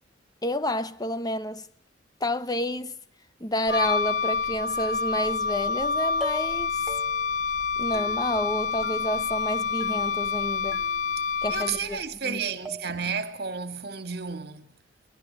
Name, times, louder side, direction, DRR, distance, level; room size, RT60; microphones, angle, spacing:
voice 1, 0.4-1.7 2.2-2.9 3.4-6.9 7.8-10.8 11.4-12.0 12.2-12.4, left 1 dB, 20° left, 1.0 m, -30 dB
Wind instrument woodwind instrument, 3.7-12.0, left 5 dB, 65° left, 1.0 m, -27 dB
sound 1, 6.2-6.6 6.9-7.4 7.9-8.5 8.8-9.5 9.8-10.3 10.7-11.2 11.6-12.3 12.6-13.2, equal, ahead, 2.6 m, -42 dB
voice 2, 11.5-14.6, right 6 dB, 55° right, 2.4 m, -32 dB
25.0 x 21.0 x 7.7 m
head